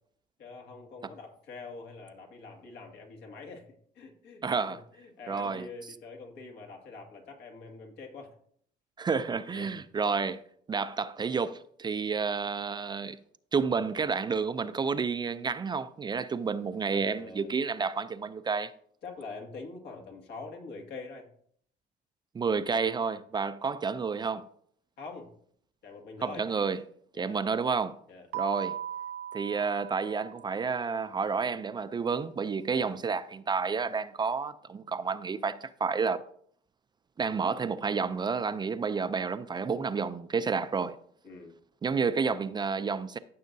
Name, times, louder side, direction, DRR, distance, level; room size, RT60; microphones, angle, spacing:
voice 1, 0.4-3.7 4.0-8.4 9.5-9.8 16.9-17.6 19.0-21.3 25.0-25.3 25.8-26.5 27.1-27.4 28.1-28.3 32.7-33.0 41.2-41.6, left 3 dB, 75° left, 2.1 m, -45 dB
voice 2, 4.4-4.8 5.3-5.7 9.0-10.4 10.7-13.2 13.5-18.7 22.3-24.5 26.2-26.8 27.2-28.0 28.3-28.8 29.3-36.2 37.2-41.0 41.8-43.2, right 5 dB, 25° right, 0.4 m, -30 dB
Keyboard (musical), 28.3-30.9, right 10 dB, 75° right, 0.5 m, -38 dB
15.0 x 6.3 x 2.7 m
cardioid pair, 110°, 17 cm